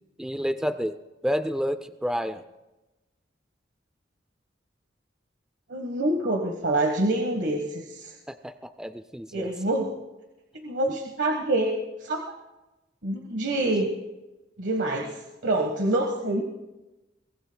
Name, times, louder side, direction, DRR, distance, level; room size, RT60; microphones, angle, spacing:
voice 1, 0.2-1.0 1.2-2.4 8.3-9.5 10.9-11.0, equal, 5° right, 10 dB, 0.4 m, -30 dB
voice 2, 5.7-8.1 9.3-9.9 10.6-11.7 12.0-12.2 13.0-13.9 14.6-16.4, right 2 dB, 70° right, 2 dB, 1.4 m, -26 dB
23.0 x 20.0 x 2.3 m, 1.1 s
head